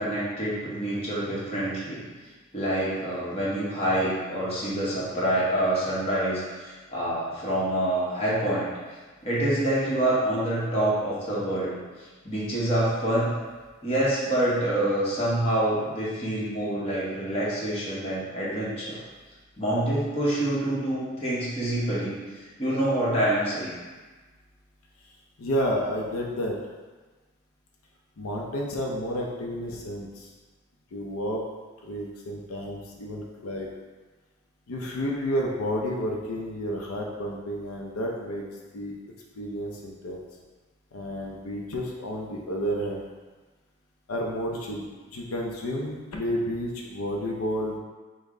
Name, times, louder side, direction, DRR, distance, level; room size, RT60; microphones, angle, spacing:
voice 1, 0.0-2.1 2.5-8.7 9.2-11.7 12.2-13.3 13.8-19.0 19.6-22.1 22.6-23.7, right 1 dB, 30° left, -7 dB, 1.0 m, -26 dB
voice 2, 25.4-26.6 28.2-30.3 30.9-31.4 31.8-33.7 34.7-38.5 38.7-38.9 39.4-40.2 40.9-43.0 44.1-47.8, equal, 85° left, -1 dB, 0.5 m, -31 dB
5.2 x 2.1 x 3.7 m, 1.3 s
head